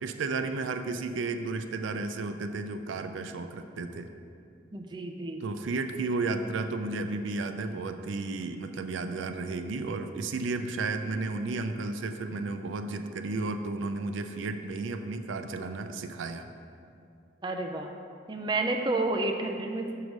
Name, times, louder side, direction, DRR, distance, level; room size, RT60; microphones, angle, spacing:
voice 1, 0.0-4.1 5.4-16.5, right 3 dB, 85° right, 8 dB, 0.4 m, -33 dB
voice 2, 4.7-5.4 17.4-17.9 18.3-19.9, right 2 dB, 25° right, 3 dB, 0.4 m, -30 dB
6.1 x 4.7 x 5.2 m, 2.5 s
head